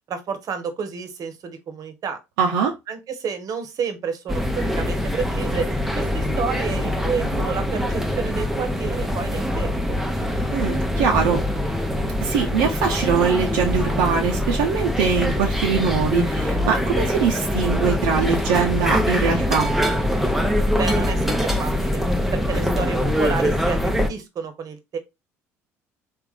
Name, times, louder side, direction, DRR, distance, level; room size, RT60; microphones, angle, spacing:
voice 1, 0.1-2.2 2.9-5.7 6.0-9.8 20.7-22.0 22.3-25.0, right 6 dB, 50° right, 1.0 m, -30 dB
voice 2, 2.4-2.7 10.5-11.4 12.2-19.7, right 6 dB, 75° right, 0.7 m, -22 dB
sound 1, 4.3-24.1, left 1 dB, 5° right, 0.7 m, -23 dB
3.5 x 2.5 x 3.5 m
hypercardioid pair, 65°, 8 cm